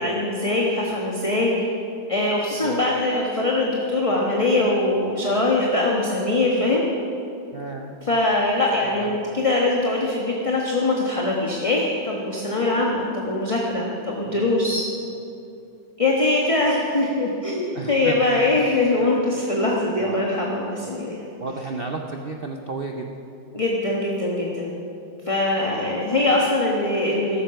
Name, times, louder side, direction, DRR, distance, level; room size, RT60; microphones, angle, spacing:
voice 1, 0.0-1.7 2.1-6.8 8.1-14.8 16.0-21.2 23.5-24.7 25.3-27.4, left 2 dB, 20° left, -2 dB, 1.1 m, -22 dB
voice 2, 7.5-7.9 8.8-9.2 14.2-14.6 17.7-18.6 20.0-20.3 21.4-23.1 25.7-26.0, right 3 dB, 60° right, 3 dB, 0.6 m, -33 dB
14.0 x 12.5 x 5.8 m, 2.6 s
omnidirectional pair, 2.0 m